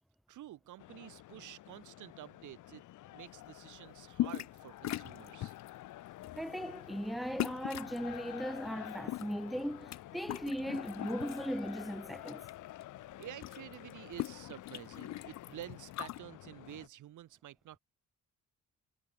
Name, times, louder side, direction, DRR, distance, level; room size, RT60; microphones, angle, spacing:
voice 1, 0.3-2.8 3.1-5.5 13.1-17.8, right 13 dB, 80° right, 4.6 m, -50 dB
sound 1, 0.8-16.9, left 15 dB, 80° left, 1.6 m, -50 dB
sound 2, 4.1-4.6 4.8-5.7 6.2-6.5 7.4-8.0 8.8-10.0 10.2-11.4 11.8-12.5 12.8-12.9 13.1-16.2, left 14 dB, 65° left, 0.6 m, -39 dB
voice 2, 6.4-12.5, equal, ahead, 1.1 m, -38 dB
cardioid pair, 90°, 30 cm